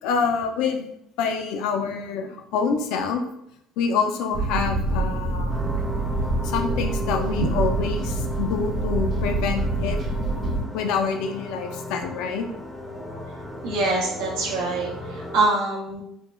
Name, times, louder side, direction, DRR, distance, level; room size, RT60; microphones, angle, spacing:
voice 1, 0.0-0.9 1.2-3.2 3.8-5.5 6.4-10.0 10.7-12.4, left 5 dB, 80° left, 5 dB, 0.3 m, -26 dB
sound 1, 4.3-10.6, right 2 dB, 55° right, 0.7 m, -26 dB
sound 2, 5.5-15.5, left 1 dB, ahead, 0.5 m, -36 dB
voice 2, 13.6-16.0, right 3 dB, 85° right, -3 dB, 0.4 m, -24 dB
3.0 x 2.1 x 2.2 m, 0.74 s
supercardioid pair, 95°, 0 cm